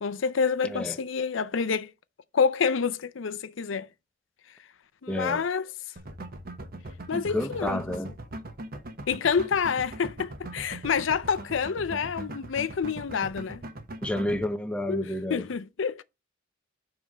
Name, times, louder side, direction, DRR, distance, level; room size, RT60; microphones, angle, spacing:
voice 1, 0.0-1.9 2.3-3.9 5.0-5.7 7.1-7.8 9.1-13.6 14.9-16.0, left 6 dB, 80° left, 0.5 m, -28 dB
voice 2, 0.6-1.0 5.1-5.4 7.1-8.1 14.0-15.5, left 1 dB, 5° left, 0.7 m, -30 dB
sound 1, 6.0-14.4, right 1 dB, 55° right, 1.2 m, -40 dB
7.4 x 3.5 x 6.1 m
head